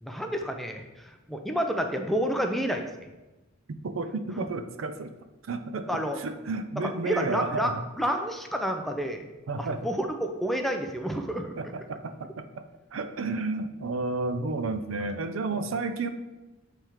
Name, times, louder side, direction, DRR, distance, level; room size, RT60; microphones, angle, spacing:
voice 1, 0.0-2.9 5.9-6.2 6.8-7.7 8.0-9.2 9.6-11.5 15.5-15.7, equal, ahead, 4 dB, 0.5 m, -29 dB
voice 2, 3.8-5.1 5.5-7.8 9.5-9.9 11.6-12.6 12.9-16.1, right 3 dB, 70° right, 8 dB, 0.5 m, -32 dB
7.3 x 3.4 x 4.5 m, 1.1 s
head